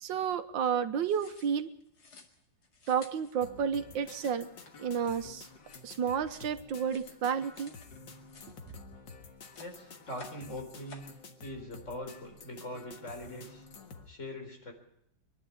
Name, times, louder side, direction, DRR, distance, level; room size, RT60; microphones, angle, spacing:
voice 1, 0.0-1.7 2.9-4.5 4.8-5.5 5.8-7.7, right 7 dB, 85° right, 10 dB, 1.7 m, -31 dB
sound 1, 1.0-7.9 8.2-9.1 9.4-10.5 10.8-11.2, left 4 dB, 60° left, 2.6 m, -55 dB
sound 2, 3.4-14.1, left 4 dB, 75° left, 2.3 m, -51 dB
voice 2, 9.5-11.0 11.4-13.7 14.1-14.7, left 1 dB, 40° left, 3 dB, 4.4 m, -42 dB
23.5 x 11.0 x 10.0 m, 0.76 s
omnidirectional pair, 2.0 m